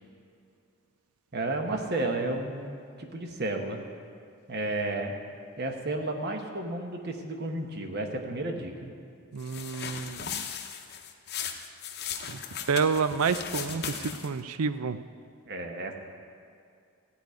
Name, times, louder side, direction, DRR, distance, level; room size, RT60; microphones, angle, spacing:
voice 1, 1.3-3.8 4.5-5.1 5.6-8.9 15.5-15.9, right 2 dB, 45° right, 3 dB, 1.2 m, -32 dB
voice 2, 9.3-10.5 12.3-12.4 12.7-15.0, right 5 dB, 75° right, 13 dB, 0.5 m, -29 dB
sound 1, 9.4-14.4, left 7 dB, 45° left, 0.8 m, -37 dB
15.0 x 5.1 x 9.4 m, 2.4 s
head